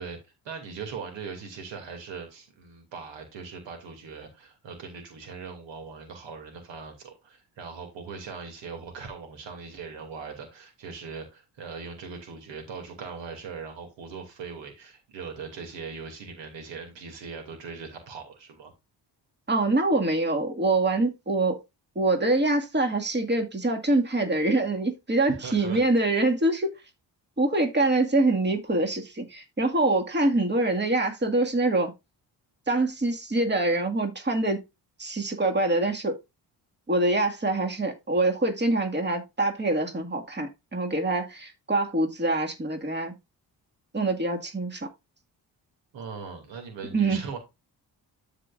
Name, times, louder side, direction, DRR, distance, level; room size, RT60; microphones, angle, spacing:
voice 1, 0.0-18.7 25.3-25.9 45.9-47.4, right 5 dB, 90° right, 2.7 m, -40 dB
voice 2, 19.5-21.6 22.0-26.7 27.4-31.9 32.7-34.6 35.0-36.2 36.9-43.1 43.9-44.9 46.9-47.2, right 2 dB, 25° right, 2.1 m, -25 dB
13.0 x 5.0 x 2.5 m
cardioid pair, 65°, 43 cm